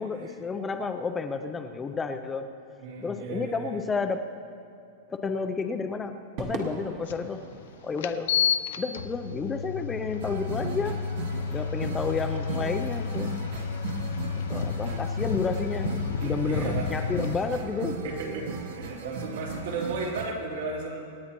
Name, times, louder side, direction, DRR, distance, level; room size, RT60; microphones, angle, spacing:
voice 1, 0.0-2.5 3.0-4.2 5.1-7.4 7.8-8.4 8.8-11.0 11.5-13.4 14.5-18.0, left 5 dB, 10° left, 7 dB, 0.4 m, -31 dB
voice 2, 2.8-3.8 16.4-17.1 18.0-21.0, right 3 dB, 75° right, -5 dB, 3.5 m, -34 dB
Crowd / Fireworks, 6.4-10.9, right 3 dB, 30° right, 1.0 m, -42 dB
sound 1, 7.1-7.2 8.0-17.4, left 6 dB, 60° left, 0.5 m, -31 dB
sound 2, 10.2-20.3, right 4 dB, 55° right, 0.9 m, -37 dB
26.5 x 9.4 x 3.0 m, 2.4 s
supercardioid pair, 180°, 0 cm